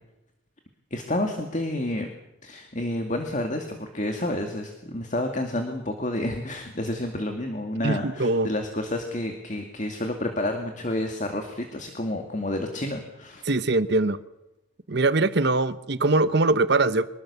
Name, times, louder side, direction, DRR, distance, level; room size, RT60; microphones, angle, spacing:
voice 1, 0.9-2.1 2.4-13.5, left 1 dB, 35° left, 4 dB, 2.3 m, -30 dB
voice 2, 7.8-8.5 13.4-14.2 14.9-17.1, right 2 dB, 55° right, 14 dB, 1.0 m, -22 dB
24.5 x 21.0 x 7.0 m, 0.93 s
head